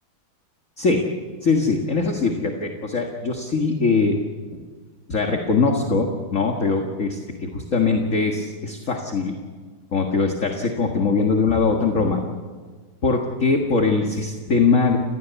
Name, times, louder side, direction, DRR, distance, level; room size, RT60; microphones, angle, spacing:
voice 1, 0.8-1.1 1.4-4.2 5.1-9.3 9.9-12.3 13.0-15.0, left 4 dB, 40° left, 2 dB, 2.0 m, -21 dB
29.5 x 16.0 x 8.4 m, 1.5 s
omnidirectional pair, 2.4 m